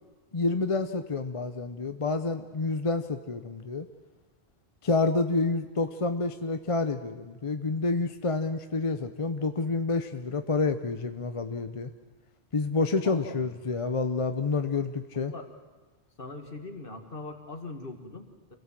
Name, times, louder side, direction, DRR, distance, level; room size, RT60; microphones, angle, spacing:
voice 1, 0.3-3.9 4.8-11.9 12.5-15.3, left 3 dB, 35° left, 8 dB, 0.7 m, -28 dB
voice 2, 13.0-13.6 15.1-15.5 16.2-18.6, left 3 dB, 50° left, 5 dB, 2.2 m, -41 dB
27.0 x 17.0 x 7.6 m, 1.3 s
omnidirectional pair, 1.2 m